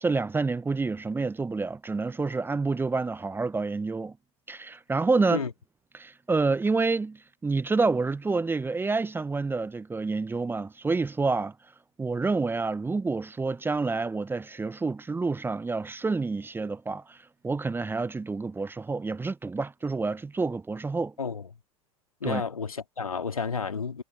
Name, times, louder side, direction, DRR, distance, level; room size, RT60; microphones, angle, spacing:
voice 1, 0.0-4.2 4.5-5.4 5.9-11.5 12.0-21.1 22.2-22.4, right 3 dB, 10° right, 1.0 m, -28 dB
voice 2, 22.2-24.0, left 5 dB, 80° left, 2.7 m, -31 dB
figure-of-eight pair, 80°, 18 cm